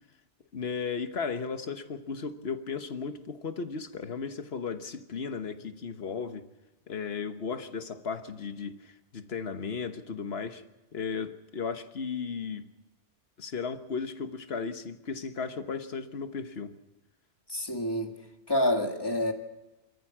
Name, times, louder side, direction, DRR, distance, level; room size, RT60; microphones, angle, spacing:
voice 1, 0.5-6.5 6.9-10.6 10.9-12.7 13.4-16.7, left 5 dB, 65° left, 9 dB, 1.5 m, -35 dB
voice 2, 17.5-18.2 18.5-19.3, left 1 dB, 20° left, 4 dB, 1.9 m, -27 dB
26.5 x 14.0 x 7.4 m, 1.1 s
omnidirectional pair, 1.2 m